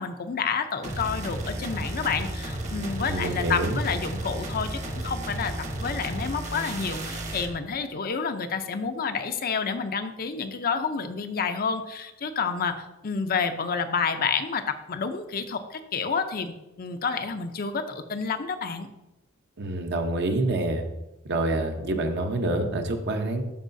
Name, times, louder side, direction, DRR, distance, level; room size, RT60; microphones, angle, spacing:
voice 1, 0.0-5.5 5.8-18.9, left 5 dB, 45° left, 8 dB, 0.6 m, -29 dB
sound 1, 0.8-7.5, right 1 dB, 35° right, 1.1 m, -33 dB
voice 2, 3.1-3.8 19.6-20.8 21.3-23.4, right 2 dB, 55° right, 5 dB, 0.9 m, -27 dB
12.5 x 4.7 x 2.6 m, 0.97 s
head